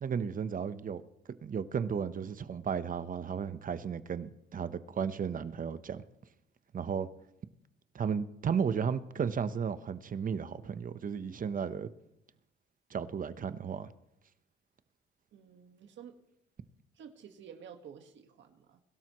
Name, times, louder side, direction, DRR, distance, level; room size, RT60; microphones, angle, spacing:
voice 1, 0.0-1.0 1.4-6.0 6.7-7.1 7.9-11.9 12.9-13.9, right 7 dB, 45° right, 0.9 m, -34 dB
voice 2, 15.3-16.2 16.9-18.8, right 8 dB, 70° right, 1.6 m, -51 dB
23.0 x 12.5 x 3.1 m
cardioid pair, 90°, 20 cm